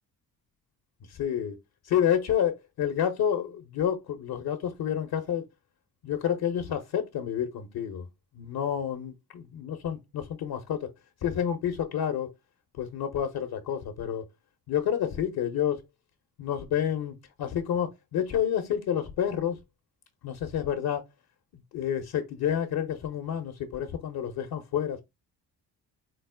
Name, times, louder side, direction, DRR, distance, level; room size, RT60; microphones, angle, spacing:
voice 1, 1.1-1.6 1.8-5.4 6.0-8.1 8.3-10.9 11.2-12.3 12.7-14.2 14.7-15.8 16.4-19.6 20.2-21.0 21.7-25.0, left 9 dB, 70° left, 0.8 m, -29 dB
4.7 x 2.0 x 3.5 m
supercardioid pair, 55°, 39 cm